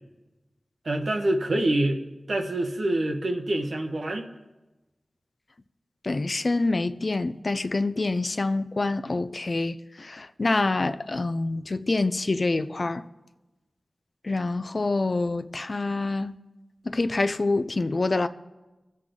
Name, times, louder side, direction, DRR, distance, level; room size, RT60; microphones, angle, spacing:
voice 1, 0.8-2.0 2.3-4.3, right 1 dB, 75° right, 1.3 m, -26 dB
voice 2, 6.0-13.0 14.2-16.3 16.9-18.3, left 2 dB, 55° left, 0.5 m, -26 dB
21.0 x 7.6 x 3.8 m
wide cardioid pair, 55°, 0 cm